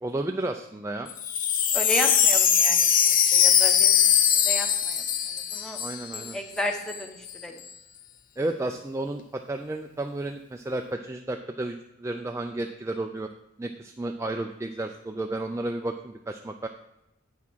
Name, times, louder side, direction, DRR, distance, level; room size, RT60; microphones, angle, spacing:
voice 1, 0.0-1.1 5.8-6.4 8.4-13.3 13.6-16.7, right 2 dB, 15° right, 5 dB, 0.3 m, -32 dB
Wind chime, 1.1-6.3 6.6-6.7 6.9-7.3, left 8 dB, 40° left, 0.6 m, -21 dB
voice 2, 1.7-5.8 6.1-7.2 7.4-7.6, left 1 dB, 5° left, 4 dB, 0.9 m, -33 dB
8.5 x 5.9 x 6.1 m, 0.91 s
head